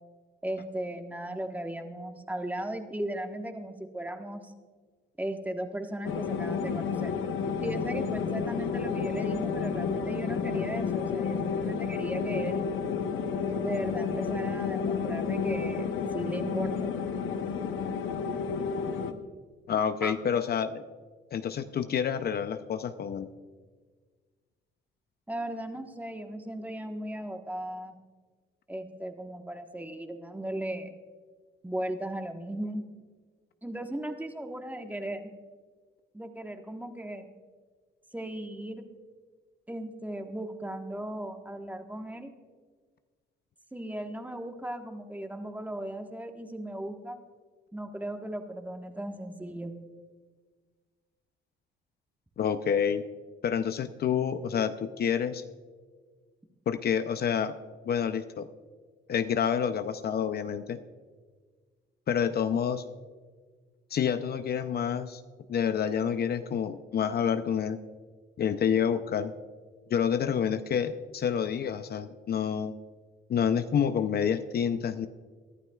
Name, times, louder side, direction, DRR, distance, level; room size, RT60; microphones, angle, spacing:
voice 1, 0.4-4.5 5.2-7.1 7.6-12.6 13.6-16.9 20.0-20.1 25.3-28.0 28.7-30.9 31.6-32.8 33.6-35.3 36.1-37.3 38.1-38.9 39.7-42.3 43.7-47.2 47.7-49.7, right 1 dB, 10° right, 5 dB, 1.3 m, -37 dB
sound 1, 6.0-19.1, left 6 dB, 80° left, 0.9 m, -31 dB
voice 2, 19.7-20.8 21.3-23.3 52.4-53.0 53.4-55.4 56.7-57.5 57.8-58.5 59.1-60.8 62.1-62.8 63.9-65.2 65.5-67.8 68.4-69.3 69.9-72.7 73.3-75.1, left 8 dB, 55° left, 10 dB, 0.6 m, -28 dB
22.5 x 11.5 x 2.4 m, 1.5 s
cardioid pair, 90°, 20 cm